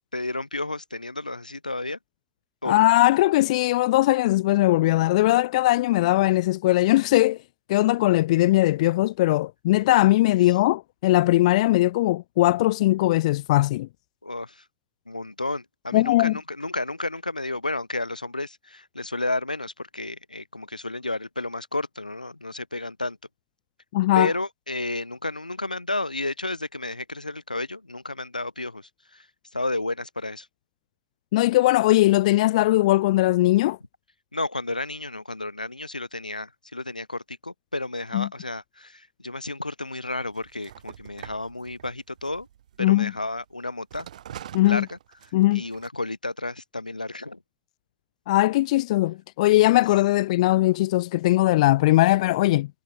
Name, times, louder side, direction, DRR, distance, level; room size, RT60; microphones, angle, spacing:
voice 1, 0.1-2.0 2.6-2.9 5.2-5.3 10.5-10.6 14.2-14.6 15.1-23.2 24.1-29.3 29.5-30.5 34.3-42.5 42.8-44.1 44.6-45.0 45.5-47.4, left 2 dB, 90° left, 1.5 m, -32 dB
voice 2, 2.6-7.4 7.7-13.9 15.9-16.3 23.9-24.3 31.3-33.8 38.1-38.3 42.8-43.1 44.5-44.8 45.3-45.6 48.3-52.7, left 17 dB, 60° left, 1.4 m, -20 dB
sound 1, 40.3-43.4 43.9-45.9, right 11 dB, 65° right, 7.6 m, -44 dB
figure-of-eight pair, 85°, 4 cm